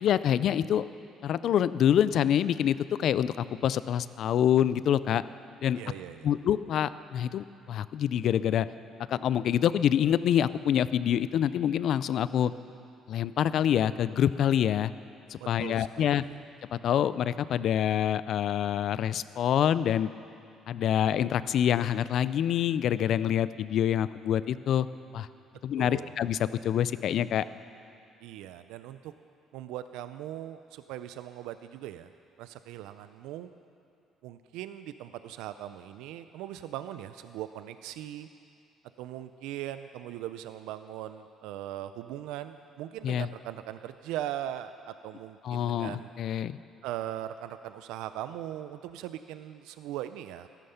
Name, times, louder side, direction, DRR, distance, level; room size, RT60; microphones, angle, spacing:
voice 1, 0.0-0.8 1.2-5.2 5.6-5.8 6.2-8.7 9.1-12.5 13.1-14.9 15.3-16.2 16.7-20.1 20.7-24.9 25.1-25.3 25.6-27.4 43.0-43.3 45.4-46.6, left 10 dB, 65° left, 16 dB, 0.4 m, -26 dB
voice 2, 5.7-6.3 15.4-16.4 25.8-26.1 28.2-29.1 29.5-32.1 32.4-33.5 34.2-38.3 39.0-46.1 46.8-50.5, right 12 dB, 90° right, 11 dB, 0.4 m, -40 dB
14.5 x 13.0 x 5.7 m, 2.5 s
cardioid pair, 100°, 0 cm